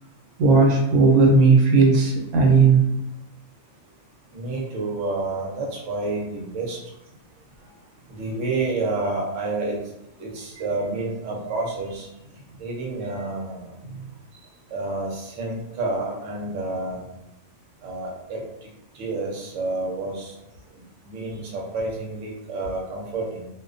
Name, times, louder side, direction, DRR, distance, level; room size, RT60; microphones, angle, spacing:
voice 1, 0.4-2.9, right 4 dB, 90° right, 0 dB, 1.0 m, -16 dB
voice 2, 4.3-6.8 8.1-9.8 10.2-12.1 12.6-13.7 14.7-17.0 17.8-18.4 19.0-20.3 21.1-23.5, right 2 dB, 65° right, -2 dB, 0.9 m, -29 dB
2.5 x 2.1 x 2.4 m, 0.88 s
omnidirectional pair, 1.5 m